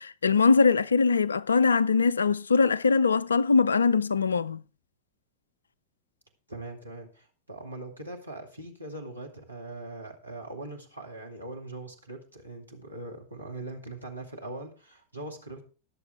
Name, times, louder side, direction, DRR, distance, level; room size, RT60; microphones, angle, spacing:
voice 1, 0.0-4.6, left 4 dB, 75° left, 0.5 m, -22 dB
voice 2, 6.5-15.6, right 2 dB, 85° right, 2.1 m, -41 dB
19.5 x 6.9 x 3.6 m
figure-of-eight pair, 90°, 0 cm